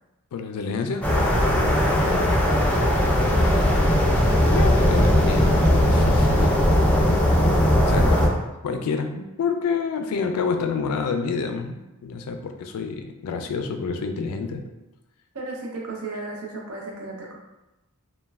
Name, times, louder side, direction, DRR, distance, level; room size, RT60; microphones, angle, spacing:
voice 1, 0.3-1.1 1.5-2.1 4.5-6.7 7.0-7.4 7.8-8.2 8.6-14.6, left 5 dB, 75° left, 6 dB, 0.3 m, -28 dB
sound 1, 1.0-8.3, equal, 5° left, 0.4 m, -19 dB
voice 2, 8.0-8.3 15.3-17.3, right 3 dB, 70° right, -2 dB, 0.6 m, -35 dB
3.0 x 2.2 x 2.3 m, 1.0 s
head